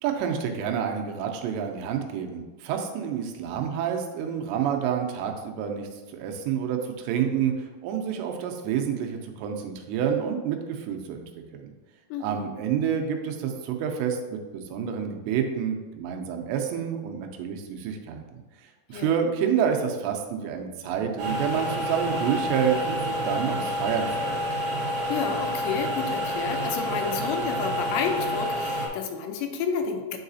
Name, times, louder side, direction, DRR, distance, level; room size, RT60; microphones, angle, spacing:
voice 1, 0.0-11.2 11.5-11.7 12.2-24.4, right 8 dB, 85° right, 3 dB, 2.8 m, -28 dB
voice 2, 12.1-12.5 18.9-19.1 25.1-30.2, left 6 dB, 85° left, 5 dB, 2.8 m, -30 dB
sound 1, 21.2-28.9, equal, 60° right, 2.0 m, -29 dB
8.8 x 4.8 x 2.7 m, 1.3 s
omnidirectional pair, 5.0 m